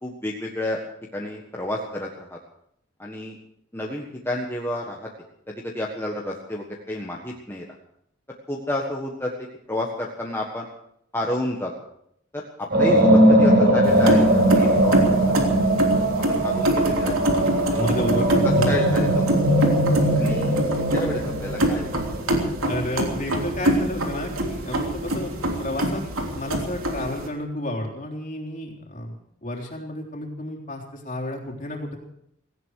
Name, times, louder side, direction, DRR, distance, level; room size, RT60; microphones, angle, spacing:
voice 1, 0.0-0.8 1.1-2.4 3.0-3.4 3.7-5.1 5.5-7.8 8.5-10.7 11.1-11.7 12.3-15.0 15.3-15.8 16.3-17.2 17.7-18.0 18.6-19.3 20.2-20.6 20.9-21.9, left 1 dB, 10° left, -2 dB, 1.5 m, -30 dB
sound 1, 12.7-22.9, right 1 dB, 50° right, 4.9 m, -20 dB
sound 2, 13.8-27.3, right 1 dB, 80° right, 3.2 m, -26 dB
voice 2, 17.7-19.0 22.7-25.3 25.6-26.0 26.3-29.1 29.4-32.0, left 1 dB, 35° left, 0 dB, 3.6 m, -30 dB
17.5 x 17.0 x 4.8 m, 0.72 s
head